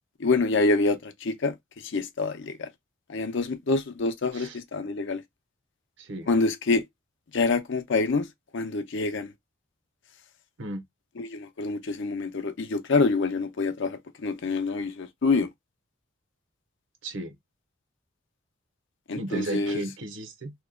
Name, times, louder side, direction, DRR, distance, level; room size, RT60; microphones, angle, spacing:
voice 1, 0.2-1.5 1.8-2.7 3.1-5.2 6.3-6.8 7.3-8.3 8.5-9.3 11.2-15.5 19.1-19.8, left 3 dB, 60° left, 0.6 m, -26 dB
voice 2, 6.0-6.3 10.6-10.8 17.0-17.4 19.1-20.5, right 2 dB, 60° right, 0.8 m, -34 dB
2.9 x 2.3 x 3.5 m
head